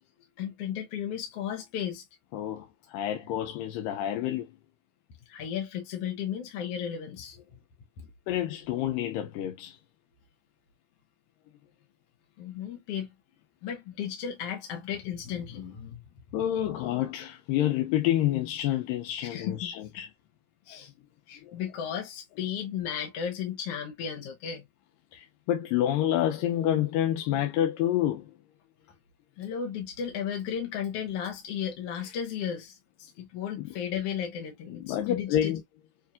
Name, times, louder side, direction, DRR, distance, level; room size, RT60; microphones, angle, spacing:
voice 1, 0.4-2.0 5.3-7.4 12.4-13.1 13.6-16.0 19.2-19.7 20.6-20.9 21.3-24.7 29.4-35.5, left 8 dB, 65° left, 1.5 m, -34 dB
voice 2, 2.3-4.5 8.3-9.8 16.3-20.1 21.4-21.6 25.1-28.3 33.6-33.7 34.7-35.6, left 12 dB, 85° left, 2.4 m, -28 dB
6.9 x 2.7 x 2.4 m
omnidirectional pair, 3.9 m